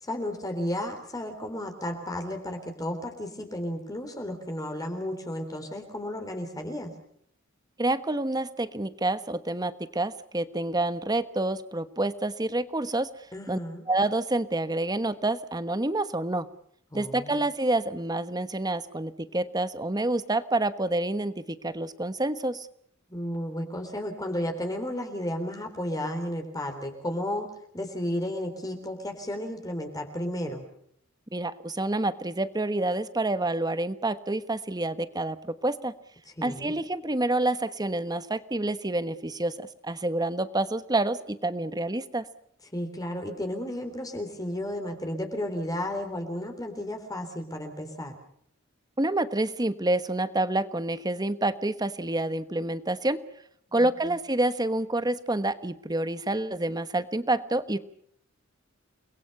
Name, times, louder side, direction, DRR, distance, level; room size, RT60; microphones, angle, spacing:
voice 1, 0.0-6.9 13.3-13.8 16.9-17.4 23.1-27.5 27.7-30.7 36.4-36.7 42.7-48.1 53.7-54.1, left 1 dB, 20° left, 5 dB, 3.7 m, -33 dB
voice 2, 7.8-13.1 13.5-13.6 13.9-16.5 16.9-22.7 31.3-35.9 36.4-42.3 49.0-53.2 53.7-57.8, right 2 dB, 20° right, 13 dB, 1.2 m, -28 dB
30.0 x 21.5 x 5.6 m, 0.68 s
head